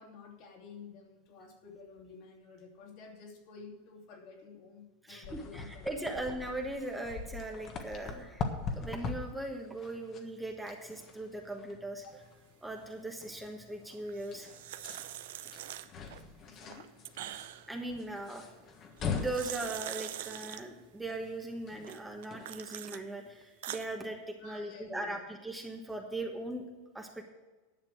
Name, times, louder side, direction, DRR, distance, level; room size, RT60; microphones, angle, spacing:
voice 1, 0.0-6.2 12.0-12.1 16.5-16.9 24.4-25.2, left 4 dB, 55° left, 2 dB, 2.7 m, -51 dB
voice 2, 5.0-8.4 8.7-12.1 12.6-14.5 17.7-18.5 19.1-26.6 26.9-27.2, right 2 dB, 5° right, 2 dB, 1.2 m, -39 dB
sound 1, 5.2-22.6, left 5 dB, 35° left, 1.4 m, -43 dB
sound 2, 14.1-16.2 16.6-17.8 19.0-20.6 21.8-23.0 23.4-23.9, right 13 dB, 75° right, 0.6 m, -43 dB
11.0 x 6.9 x 6.4 m, 1.2 s
supercardioid pair, 135°, 0 cm